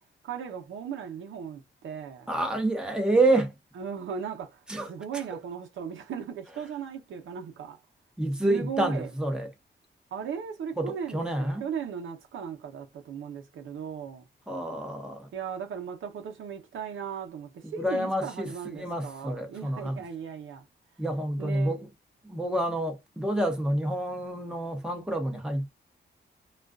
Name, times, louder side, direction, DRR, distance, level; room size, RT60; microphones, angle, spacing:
voice 1, 0.2-2.3 3.8-4.6 4.9-7.8 8.4-9.1 10.1-14.3 15.3-20.6 21.4-21.8, right 7 dB, 85° right, 0.7 m, -37 dB
voice 2, 2.3-3.5 4.7-5.2 8.2-9.5 10.8-11.6 14.5-15.3 17.6-20.0 21.0-21.9 22.2-25.7, right 1 dB, 5° right, 0.8 m, -28 dB
2.4 x 2.3 x 2.3 m
cardioid pair, 90°, 20 cm